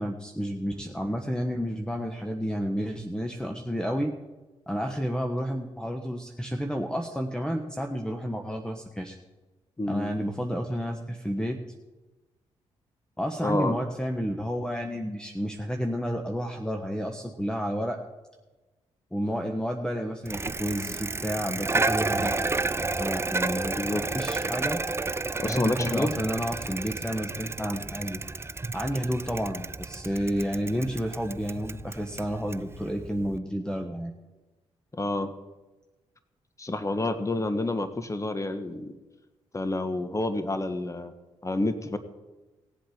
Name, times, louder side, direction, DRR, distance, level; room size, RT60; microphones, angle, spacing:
voice 1, 0.0-4.1 4.7-9.2 9.9-11.6 13.2-18.0 19.1-22.4 23.0-23.8 24.1-24.8 25.4-28.2 28.7-34.1, equal, 5° left, 4 dB, 1.3 m, -31 dB
voice 2, 9.8-10.1 13.4-13.7 23.7-24.0 25.4-26.1 34.9-35.3 36.6-38.9 39.5-41.1 41.4-42.0, left 2 dB, 20° left, 10 dB, 1.4 m, -28 dB
Bicycle, 20.3-33.4, right 3 dB, 20° right, 0.5 m, -31 dB
18.0 x 7.8 x 5.1 m, 1.2 s
hypercardioid pair, 45°, 14 cm